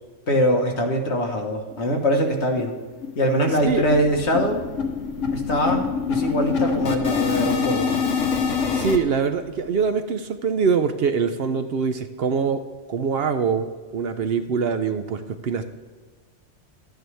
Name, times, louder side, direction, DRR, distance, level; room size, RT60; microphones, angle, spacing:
voice 1, 0.3-2.8 3.2-4.6 5.3-7.9, equal, 65° left, 3 dB, 1.6 m, -22 dB
sound 1, 1.7-1.8 2.1-2.2 2.6-2.8 3.0-9.0, left 6 dB, 85° left, 1.3 m, -25 dB
sound 2, 3.5-9.7, equal, 10° left, 2.4 m, -43 dB
voice 2, 8.7-12.6 12.9-15.6, right 5 dB, 60° right, 9 dB, 0.8 m, -23 dB
12.5 x 9.0 x 3.3 m, 1.4 s
omnidirectional pair, 1.3 m